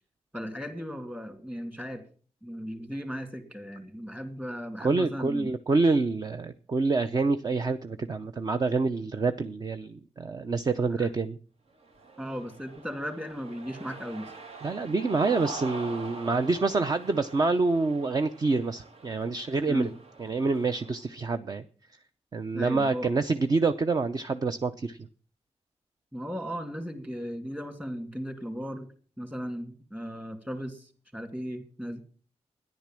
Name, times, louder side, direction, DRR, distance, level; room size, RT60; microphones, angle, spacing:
voice 1, 0.3-2.0 2.4-5.5 11.0-11.1 12.2-14.3 19.7-19.9 22.5-23.1 26.1-28.9 29.2-32.0, equal, 15° right, 7 dB, 2.7 m, -36 dB
voice 2, 4.8-11.4 14.6-19.9 20.2-21.6 22.3-25.0, right 3 dB, 35° right, 9 dB, 0.7 m, -27 dB
Cheering, 11.8-21.1, right 3 dB, 65° right, 2.1 m, -44 dB
14.0 x 10.5 x 7.5 m, 0.43 s
wide cardioid pair, 175°, 11 cm